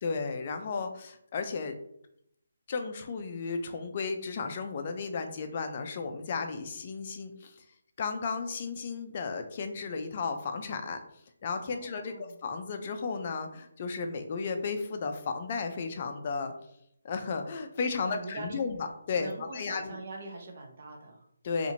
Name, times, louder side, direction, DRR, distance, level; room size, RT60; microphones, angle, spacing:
voice 1, 0.0-1.8 2.7-7.5 8.0-11.0 11.4-16.5 17.0-19.9 21.4-21.7, left 4 dB, 40° left, 6 dB, 0.4 m, -34 dB
voice 2, 11.7-12.4 18.0-18.6 19.1-21.3, right 3 dB, 45° right, 2 dB, 0.7 m, -43 dB
2.8 x 2.5 x 2.7 m, 0.73 s
figure-of-eight pair, 160°, 0 cm